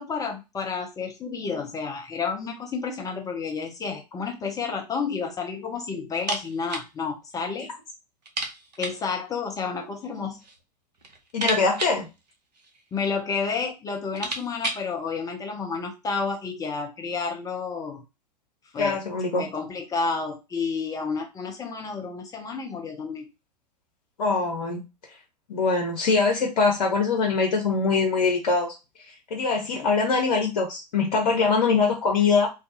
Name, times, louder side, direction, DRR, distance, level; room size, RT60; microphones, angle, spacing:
voice 1, 0.0-7.7 8.8-10.4 12.9-18.0 18.7-19.0 19.4-23.3, left 5 dB, 15° left, 2 dB, 0.4 m, -30 dB
sound 1, 6.1-6.9 7.2-7.3 7.6-7.7 8.2-9.1 10.0-10.6 10.9-12.9 13.6-13.7 14.0-14.9, right 2 dB, 75° right, 0.7 m, -34 dB
voice 2, 11.3-12.1 18.8-19.5 24.2-24.8 25.5-28.7 29.3-32.5, left 4 dB, 60° left, 1 dB, 0.8 m, -23 dB
2.5 x 2.2 x 2.6 m, 0.25 s
figure-of-eight pair, 90°, 21 cm